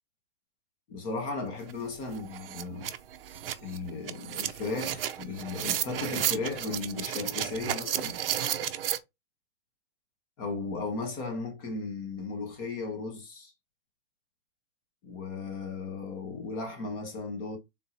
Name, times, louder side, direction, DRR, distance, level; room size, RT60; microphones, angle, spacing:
voice 1, 0.9-2.9 3.6-8.2 10.4-13.5 15.0-17.6, left 3 dB, 20° left, 1.0 m, -36 dB
sound 1, 1.7-1.8 2.1-9.0, right 10 dB, 55° right, 0.6 m, -33 dB
3.6 x 2.8 x 4.1 m
hypercardioid pair, 165°, 35 cm